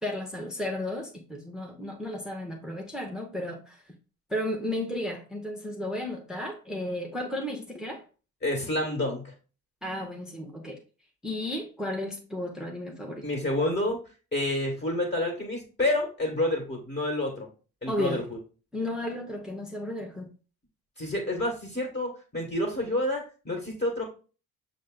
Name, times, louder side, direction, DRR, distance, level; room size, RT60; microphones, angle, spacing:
voice 1, 0.0-3.8 4.3-8.0 9.8-10.8 11.2-13.2 17.9-18.3 18.7-20.3, left 1 dB, ahead, 0.9 m, -33 dB
voice 2, 8.4-9.3 13.2-14.0 14.3-17.5 17.8-18.4 21.0-24.0, left 1 dB, 20° left, 1.6 m, -29 dB
6.4 x 2.2 x 3.8 m
hypercardioid pair, 50°, 46 cm